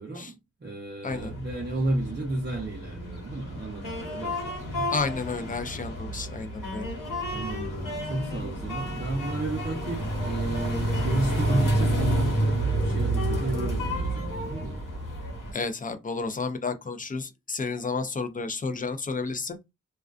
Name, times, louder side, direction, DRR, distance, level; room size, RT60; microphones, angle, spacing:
voice 1, 0.0-4.9 7.3-14.8, right 2 dB, 35° right, 0.7 m, -32 dB
sound 1, 1.1-15.5, right 1 dB, 85° left, 1.0 m, -30 dB
voice 2, 4.9-6.9 15.5-19.6, left 4 dB, 25° left, 0.4 m, -31 dB
2.4 x 2.2 x 2.4 m
wide cardioid pair, 100°, 31 cm